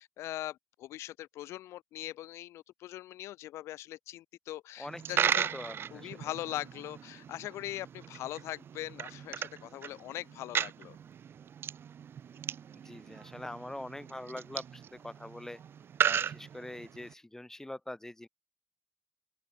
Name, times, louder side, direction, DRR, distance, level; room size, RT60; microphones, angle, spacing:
voice 1, 0.0-5.5 5.9-11.0, left 14 dB, 90° left, 0.6 m, -41 dB
voice 2, 4.8-6.3 12.7-15.6 16.0-18.3, left 1 dB, 10° left, 2.7 m, -44 dB
Coin (dropping), 4.9-17.1, right 8 dB, 55° right, 0.5 m, -36 dB
open air
cardioid pair, 85°, 5 cm